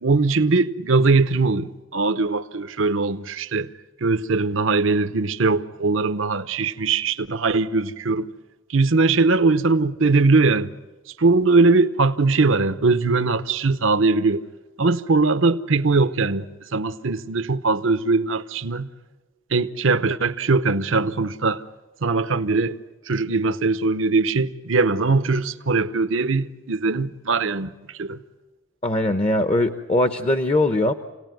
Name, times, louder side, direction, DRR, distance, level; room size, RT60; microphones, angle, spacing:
voice 1, 0.0-3.7 4.0-8.3 8.7-10.7 11.2-14.4 14.8-16.5 16.7-18.9 19.5-21.6 22.0-22.8 23.1-28.2, right 3 dB, 70° right, 0.8 m, -20 dB
voice 2, 28.8-30.9, left 1 dB, 30° left, 0.8 m, -21 dB
28.5 x 18.5 x 9.2 m
head